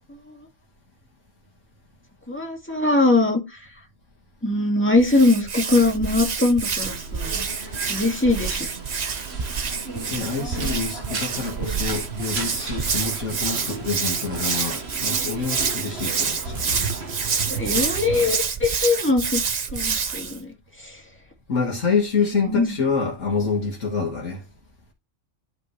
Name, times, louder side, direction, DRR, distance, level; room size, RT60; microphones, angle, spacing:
voice 1, 2.3-3.4 4.4-7.4 7.9-8.7 17.5-19.4 19.7-20.5 20.8-20.9 22.2-22.7, left 2 dB, 10° left, 2.0 m, -21 dB
Hands, 5.0-20.4, right 5 dB, 40° right, 0.7 m, -28 dB
sound 1, 6.8-18.3, right 3 dB, 55° right, 1.8 m, -35 dB
voice 2, 10.1-17.0 21.5-24.4, left 5 dB, 85° left, 2.2 m, -27 dB
11.5 x 5.2 x 3.2 m
omnidirectional pair, 1.3 m